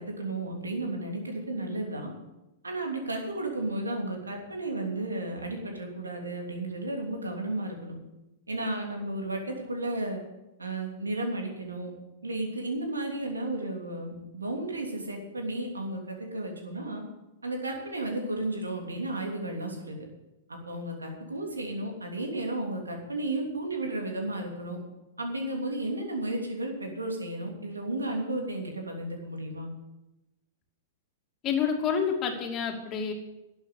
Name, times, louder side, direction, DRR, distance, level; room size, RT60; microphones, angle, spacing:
voice 1, 0.0-2.1 2.6-8.0 8.5-10.2 10.6-11.9 12.2-17.0 17.4-20.0 20.5-24.8 25.2-29.7, right 2 dB, 85° right, 2 dB, 3.0 m, -33 dB
voice 2, 31.4-33.1, left 7 dB, 30° left, 1 dB, 2.6 m, -28 dB
12.0 x 7.9 x 8.9 m, 1.0 s
figure-of-eight pair, 105°, 0 cm